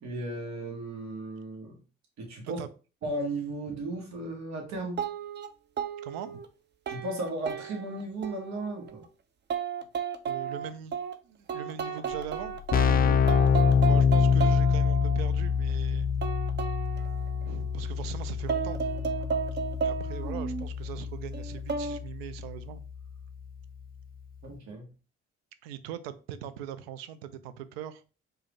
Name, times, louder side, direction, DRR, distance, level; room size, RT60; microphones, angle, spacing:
voice 1, 0.0-1.7 2.2-2.6 3.0-5.0 6.9-9.0 12.9-13.3 24.4-24.9, right 2 dB, 65° right, 1.3 m, -35 dB
sound 1, 5.0-5.5 5.8-6.5 6.9-9.1 9.5-11.1 11.5-12.9 13.3-15.8 16.2-17.9 18.5-20.7 21.3-22.0, right 6 dB, 35° right, 0.6 m, -33 dB
voice 2, 6.0-6.4 10.3-11.0 11.2-12.6 13.9-16.1 17.4-19.4 19.8-22.8 25.6-28.0, right 9 dB, 85° right, 0.4 m, -41 dB
Keyboard (musical), 12.1-12.2 12.4-23.0, left 6 dB, 30° left, 0.4 m, -26 dB
4.8 x 2.5 x 3.0 m
hypercardioid pair, 55°, 30 cm